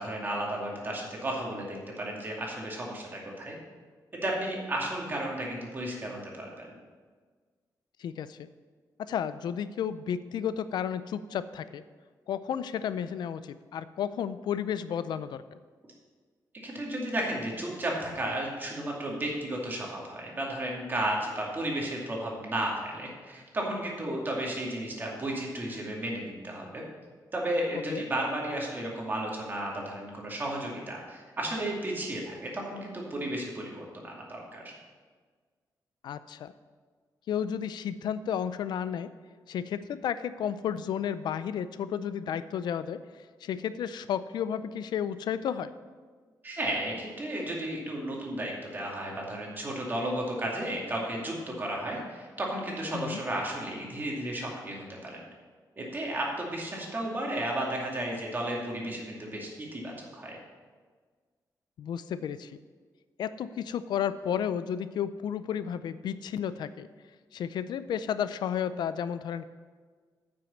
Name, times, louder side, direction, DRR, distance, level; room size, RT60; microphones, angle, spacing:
voice 1, 0.0-3.6 4.1-6.7 16.6-26.8 27.3-34.7 46.4-55.2 55.8-60.4, right 1 dB, 25° right, -2 dB, 2.3 m, -33 dB
voice 2, 8.0-8.5 9.0-11.8 12.3-15.6 27.9-28.0 36.0-36.5 37.3-39.1 39.5-43.0 43.4-45.7 52.9-53.2 61.8-62.6 63.2-66.9 67.3-69.5, left 8 dB, 85° left, 14 dB, 0.4 m, -32 dB
9.3 x 6.2 x 7.2 m, 1.5 s
wide cardioid pair, 150°, 7 cm